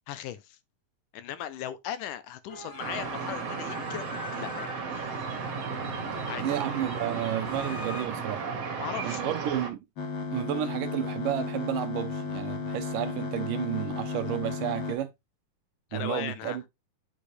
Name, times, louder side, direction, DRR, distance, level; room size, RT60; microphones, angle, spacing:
voice 1, 0.1-0.6 1.1-5.0 6.3-6.4 8.8-9.5 15.9-16.6, left 11 dB, 80° left, 2.1 m, -38 dB
sound 1, 2.5-8.1, left 2 dB, 40° left, 2.9 m, -43 dB
sound 2, 2.8-9.7, right 5 dB, 55° right, 2.4 m, -34 dB
voice 2, 6.4-8.5 9.0-9.8 10.3-15.1 15.9-16.6, right 12 dB, 80° right, 2.4 m, -31 dB
sound 3, 10.0-15.0, left 4 dB, 55° left, 1.4 m, -34 dB
8.5 x 5.2 x 3.2 m
omnidirectional pair, 3.9 m